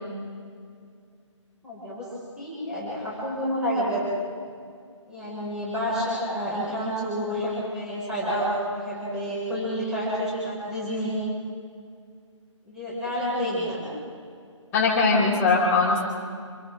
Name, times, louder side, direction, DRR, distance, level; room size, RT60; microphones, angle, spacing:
voice 1, 1.6-2.1 2.4-4.2 5.1-11.2 12.7-13.9, equal, 5° right, -8 dB, 5.9 m, -29 dB
voice 2, 14.7-16.0, left 3 dB, 10° left, -5 dB, 4.6 m, -20 dB
28.0 x 25.5 x 3.9 m, 2.2 s
figure-of-eight pair, 160°, 16 cm